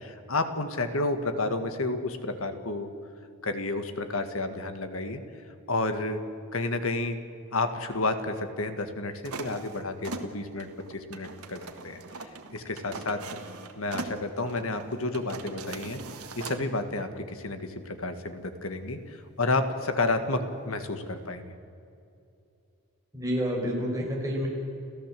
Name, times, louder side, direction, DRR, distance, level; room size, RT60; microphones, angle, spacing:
voice 1, 0.0-2.9 3.4-5.2 5.7-6.2 6.5-7.2 7.5-12.0 12.5-13.4 13.8-16.0 16.4-21.5, left 2 dB, 70° left, 8 dB, 1.8 m, -31 dB
sound 1, 9.2-16.6, right 3 dB, 85° right, 1.7 m, -41 dB
voice 2, 23.1-24.5, equal, 15° right, -2 dB, 5.0 m, -29 dB
30.0 x 14.5 x 7.7 m, 2.6 s
head